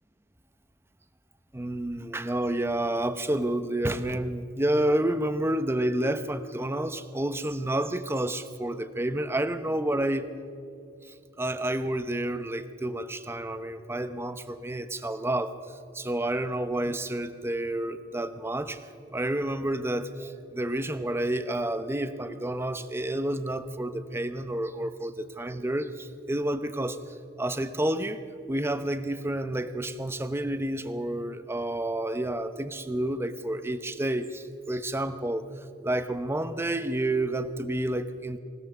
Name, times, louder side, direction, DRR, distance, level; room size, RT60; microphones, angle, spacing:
voice 1, 1.5-10.3 11.4-15.5 15.9-18.8 19.1-27.0 27.4-28.2 28.5-35.4 35.8-38.4, right 1 dB, 15° right, 10 dB, 0.8 m, -29 dB
24.0 x 17.0 x 6.9 m, 2.5 s
head